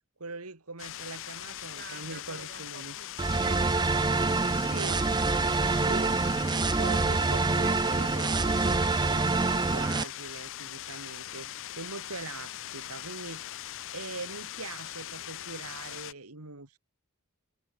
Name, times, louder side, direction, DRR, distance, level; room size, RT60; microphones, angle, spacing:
voice 1, 0.2-2.9 3.4-3.6 4.7-5.0 5.7-16.8, right 3 dB, 75° right, 2.7 m, -42 dB
sound 1, 0.8-16.1, left 13 dB, 60° left, 0.7 m, -41 dB
voice 2, 1.4-4.7 11.3-11.5, right 6 dB, 50° right, 5.0 m, -52 dB
sound 2, 3.2-10.0, right 3 dB, 20° right, 0.5 m, -26 dB
head